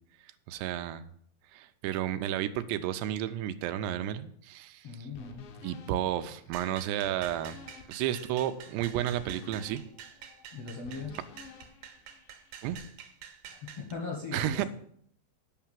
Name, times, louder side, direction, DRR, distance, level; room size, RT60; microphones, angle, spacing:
voice 1, 0.5-1.1 1.5-5.1 5.6-7.6 7.9-9.8 12.6-12.8 14.3-14.7, right 11 dB, 85° right, 10 dB, 2.7 m, -32 dB
voice 2, 4.8-5.5 10.5-11.2 13.5-14.7, left 4 dB, 65° left, 0 dB, 1.6 m, -39 dB
sound 1, 5.1-12.8, left 4 dB, 85° left, 3.3 m, -52 dB
sound 2, 6.5-13.9, right 8 dB, 70° right, 2.3 m, -48 dB
9.1 x 5.8 x 7.4 m, 0.66 s
omnidirectional pair, 4.8 m